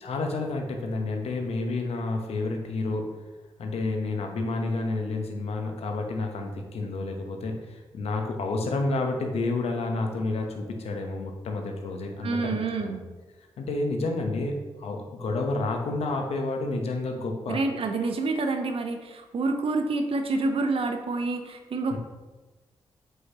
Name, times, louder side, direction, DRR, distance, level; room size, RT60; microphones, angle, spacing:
voice 1, 0.0-3.1 3.6-13.0 13.6-17.6 21.9-22.0, left 2 dB, 75° left, 3 dB, 1.0 m, -30 dB
voice 2, 12.2-13.0 17.5-22.0, right 3 dB, 60° right, 5 dB, 0.8 m, -28 dB
7.5 x 5.6 x 3.0 m, 1.2 s
supercardioid pair, 40°, 11 cm